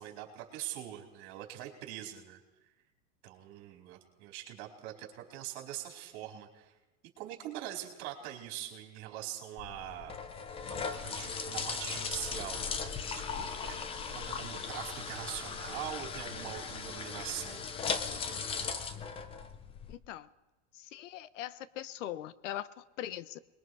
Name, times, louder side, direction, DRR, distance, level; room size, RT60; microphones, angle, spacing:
voice 1, 0.0-2.4 3.2-6.7 7.2-10.1 11.0-13.7 14.1-17.6, right 12 dB, 45° right, 1 dB, 4.5 m, -43 dB
sound 1, 9.6-20.0, left 5 dB, 15° left, 0.7 m, -38 dB
voice 2, 19.9-20.3 20.7-23.4, left 12 dB, 70° left, 17 dB, 1.0 m, -41 dB
26.0 x 21.0 x 4.8 m, 1.1 s
supercardioid pair, 160°, 38 cm